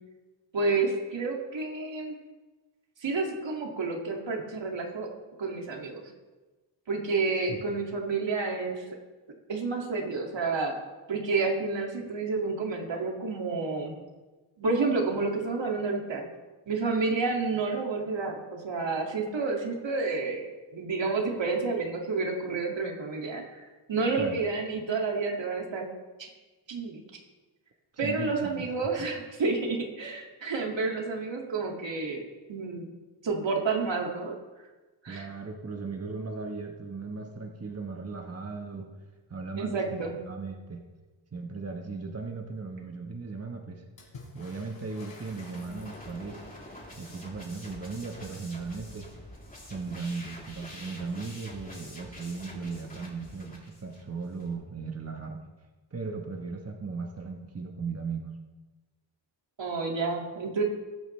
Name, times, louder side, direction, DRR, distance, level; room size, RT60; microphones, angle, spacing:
voice 1, 0.5-2.2 3.0-5.1 5.4-6.0 6.9-8.8 9.5-10.7 11.1-13.9 14.6-16.2 16.7-23.4 23.9-25.9 26.2-26.3 26.7-27.0 28.0-32.2 32.5-32.9 33.2-34.3 35.0-35.3 39.6-40.2 59.6-60.6, right 4 dB, 65° right, 0 dB, 2.5 m, -30 dB
voice 2, 28.0-28.7 35.1-38.9 39.3-40.8 41.3-43.8 44.3-46.4 47.0-49.1 49.7-55.4 55.9-58.3, right 4 dB, 30° right, 2 dB, 1.3 m, -37 dB
Water / Splash splatter, 44.0-46.4 49.6-49.7 50.0-50.8 51.9-52.0, left 2 dB, 75° left, 4.3 m, -50 dB
sound 1, 45.3-54.5, left 1 dB, 20° left, 3.4 m, -47 dB
21.5 x 9.0 x 3.3 m, 1.2 s
cardioid pair, 85°, 47 cm